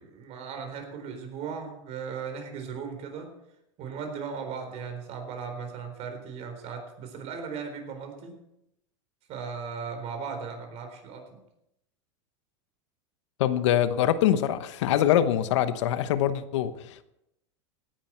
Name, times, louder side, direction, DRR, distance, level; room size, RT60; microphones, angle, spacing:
voice 1, 0.0-3.3 3.8-8.4 9.3-11.4, right 6 dB, 45° right, 5 dB, 4.0 m, -37 dB
voice 2, 13.4-17.0, left 11 dB, 75° left, 12 dB, 1.0 m, -24 dB
17.0 x 10.5 x 4.5 m, 0.82 s
hypercardioid pair, 115°, 15 cm